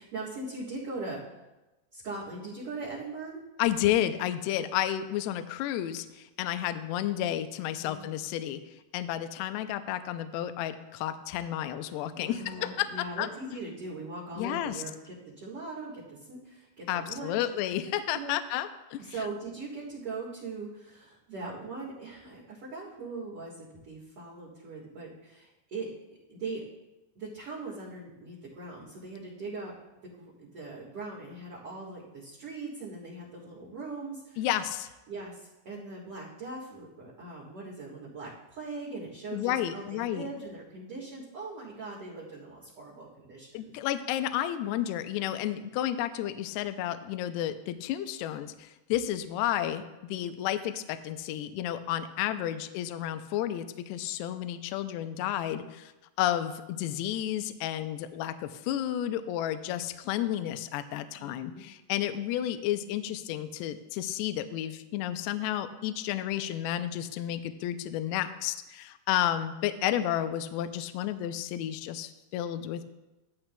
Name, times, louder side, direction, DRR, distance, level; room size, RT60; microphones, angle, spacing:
voice 1, 0.0-1.3 1.9-3.4 7.8-8.1 12.1-17.4 18.1-18.3 19.0-25.9 26.3-26.7 27.1-29.8 30.0-34.4 35.1-43.7 61.2-61.7, right 3 dB, 60° right, -7 dB, 1.5 m, -40 dB
voice 2, 3.6-8.6 8.9-13.3 14.4-14.8 16.9-19.1 34.4-34.9 39.3-40.3 43.5-55.9 56.2-72.8, left 12 dB, 85° left, 10 dB, 2.4 m, -31 dB
13.5 x 11.5 x 2.2 m, 1.0 s
omnidirectional pair, 5.2 m